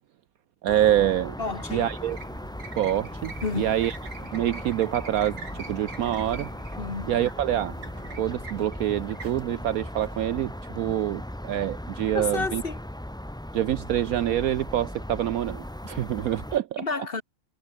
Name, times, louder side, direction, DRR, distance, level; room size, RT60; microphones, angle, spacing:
voice 1, 0.6-1.4 1.7-2.2 2.8-3.9 4.3-5.4 5.7-6.5 7.1-7.7 8.2-12.6 13.5-16.8, right 12 dB, 70° right, 0.9 m, -26 dB
sound 1, 0.7-16.6, left 1 dB, 5° left, 0.6 m, -38 dB
sound 2, 1.3-10.7, right 4 dB, 90° right, 3.8 m, -45 dB
voice 2, 1.4-1.9 3.4-3.8 6.8-7.1 12.1-12.8 16.8-17.2, left 4 dB, 35° left, 1.6 m, -30 dB
omnidirectional pair, 1.8 m